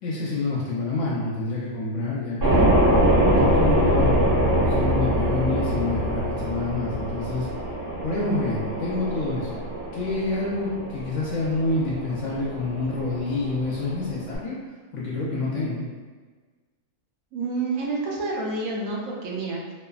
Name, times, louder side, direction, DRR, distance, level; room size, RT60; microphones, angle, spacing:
voice 1, 0.0-2.6 3.3-7.5 8.0-9.6 9.9-14.6 14.9-15.8, left 3 dB, 70° left, -5 dB, 0.8 m, -27 dB
sound 1, 2.4-14.4, right 1 dB, 45° right, 1.2 m, -24 dB
voice 2, 17.3-19.7, right 3 dB, 80° right, -2 dB, 1.0 m, -29 dB
3.1 x 2.1 x 2.3 m, 1.4 s
omnidirectional pair, 1.4 m